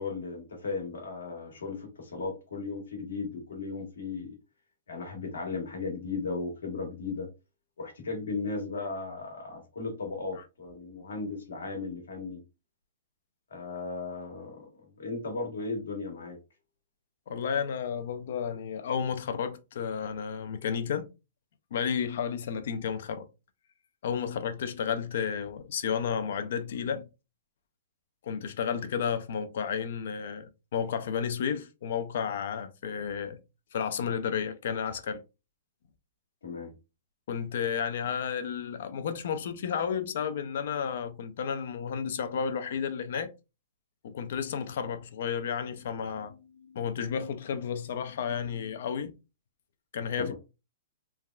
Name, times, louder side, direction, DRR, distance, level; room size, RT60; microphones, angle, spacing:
voice 1, 0.0-4.4 4.9-7.3 7.8-12.4 13.5-14.7 15.0-16.4 36.4-36.7 50.2-50.3, left 4 dB, 85° left, 1.3 m, -36 dB
voice 2, 17.3-21.1 21.7-23.3 24.0-27.1 28.2-33.4 33.7-35.2 37.3-43.3 44.0-49.1 49.9-50.3, left 7 dB, 65° left, 0.4 m, -32 dB
3.4 x 2.1 x 2.3 m
hypercardioid pair, 135°, 0 cm